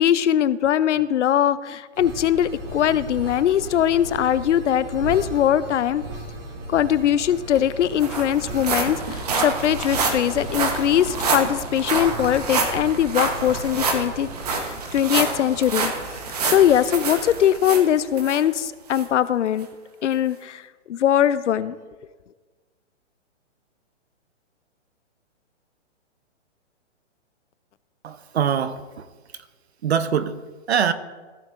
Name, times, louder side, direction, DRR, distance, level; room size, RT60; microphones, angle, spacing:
voice 1, 0.0-6.0 6.7-14.3 14.6-15.9 16.4-19.7 20.0-20.6 20.9-21.8, left 10 dB, 75° left, 16 dB, 0.6 m, -21 dB
sound 1, 1.9-14.6, right 1 dB, 75° right, 3.0 m, -36 dB
sound 2, 7.2-7.3 7.6-18.4 18.9-19.1 19.6-19.7, right 4 dB, 35° right, 0.9 m, -27 dB
voice 2, 28.0-29.1 29.3-29.5 29.8-30.4 30.7-30.9, right 8 dB, 60° right, 13 dB, 0.7 m, -23 dB
15.5 x 6.5 x 2.5 m, 1.4 s
hypercardioid pair, 175°, 36 cm